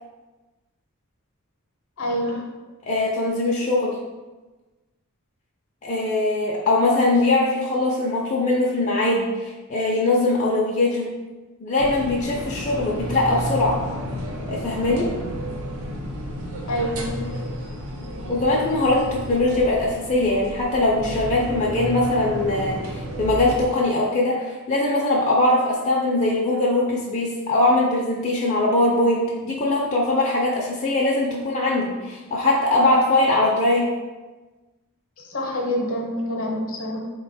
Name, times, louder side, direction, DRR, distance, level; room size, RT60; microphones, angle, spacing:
voice 1, 2.0-2.5 16.7-17.7 35.3-37.1, equal, 60° left, 0 dB, 0.8 m, -27 dB
voice 2, 2.9-4.0 5.8-11.1 11.6-13.8 14.5-15.1 18.3-33.9, left 2 dB, 30° left, -4 dB, 0.5 m, -21 dB
sound 1, 11.8-23.6, equal, 75° right, 0.6 m, -32 dB
4.0 x 2.2 x 4.1 m, 1.2 s
head